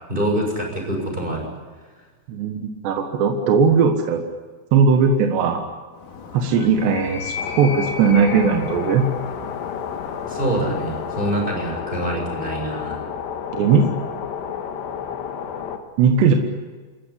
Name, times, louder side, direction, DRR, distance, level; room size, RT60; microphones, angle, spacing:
voice 1, 0.1-1.5 10.3-13.0, right 1 dB, 10° right, 1 dB, 6.4 m, -25 dB
voice 2, 2.3-4.2 4.7-5.6 6.3-9.1 13.5-13.9 16.0-16.3, right 5 dB, 75° right, 4 dB, 3.5 m, -18 dB
Animal, 5.9-11.8, left 5 dB, 50° left, 3.4 m, -35 dB
sound 1, 7.4-15.8, left 7 dB, 75° left, 3.9 m, -31 dB
29.0 x 14.5 x 10.0 m, 1.4 s
omnidirectional pair, 5.1 m